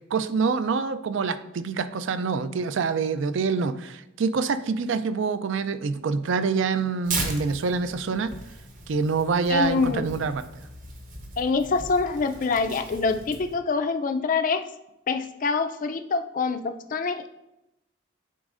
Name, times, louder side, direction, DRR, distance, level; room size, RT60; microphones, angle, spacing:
voice 1, 0.1-8.3 8.9-10.4, right 5 dB, 65° right, 12 dB, 0.4 m, -26 dB
Tearing, 7.0-13.5, right 3 dB, 40° right, 0.9 m, -37 dB
voice 2, 9.5-10.0 11.4-14.6 15.1-17.3, left 4 dB, 40° left, 8 dB, 0.4 m, -25 dB
9.7 x 4.0 x 2.5 m, 0.90 s
head